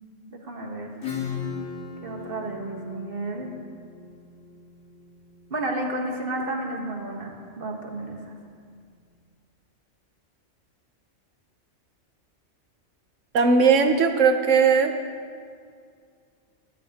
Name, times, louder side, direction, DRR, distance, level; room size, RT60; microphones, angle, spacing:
voice 1, 0.3-0.9 2.0-3.5 5.5-8.3, right 2 dB, 50° right, 1 dB, 1.5 m, -32 dB
Acoustic guitar / Strum, 1.0-6.4, left 6 dB, 80° left, 2.3 m, -37 dB
voice 2, 13.3-15.0, right 5 dB, 85° right, 5 dB, 1.3 m, -18 dB
16.5 x 12.0 x 2.9 m, 2.2 s
omnidirectional pair, 1.3 m